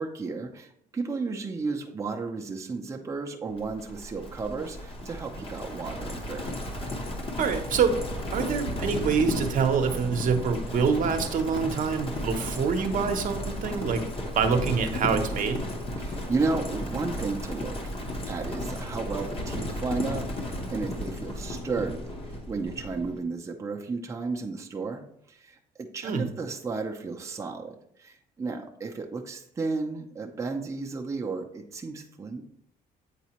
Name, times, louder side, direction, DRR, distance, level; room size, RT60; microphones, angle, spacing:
voice 1, 0.0-6.4 16.0-25.0 25.3-32.4, right 4 dB, 20° right, 2 dB, 0.6 m, -33 dB
Livestock farm animals working animals, 3.6-23.2, left 1 dB, 35° left, 1.0 m, -34 dB
voice 2, 7.4-8.0 8.3-14.0 14.3-15.7 26.0-26.3, right 6 dB, 50° right, 5 dB, 0.8 m, -26 dB
8.2 x 4.0 x 2.9 m, 0.70 s
cardioid pair, 110°, 17 cm